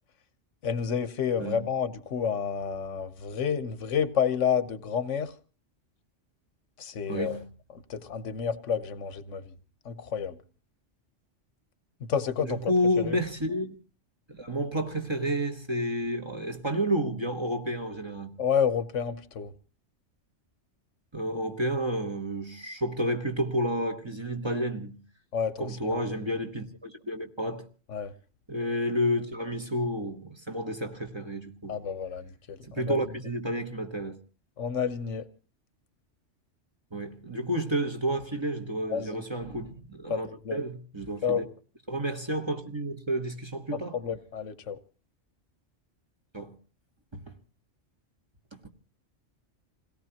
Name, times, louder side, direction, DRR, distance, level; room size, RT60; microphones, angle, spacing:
voice 1, 0.6-5.3 6.8-7.4 7.7-9.5 9.8-10.4 12.0-12.6 13.0-13.2 18.4-19.5 25.3-26.0 27.9-28.1 31.7-33.1 34.6-35.3 38.9-39.2 40.1-40.2 40.4-40.6 41.2-41.4 43.7-44.8, left 7 dB, 85° left, 1.3 m, -30 dB
voice 2, 7.1-7.4 12.4-13.7 14.3-18.4 21.1-25.0 25.6-27.6 28.5-31.8 32.7-34.2 36.9-41.5 41.9-44.0 46.3-46.6 47.1-47.4, equal, 25° right, 1.3 m, -30 dB
28.0 x 17.5 x 2.9 m
omnidirectional pair, 1.2 m